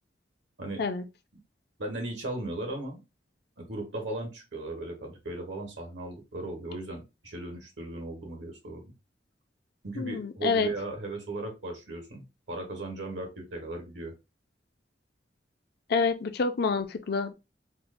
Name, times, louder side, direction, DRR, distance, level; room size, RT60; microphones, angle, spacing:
voice 1, 1.8-3.0 3.6-8.8 9.8-14.1, right 2 dB, 85° right, 1.4 m, -37 dB
voice 2, 10.0-10.7 15.9-17.3, left 4 dB, 60° left, 0.5 m, -27 dB
4.5 x 2.1 x 2.5 m
head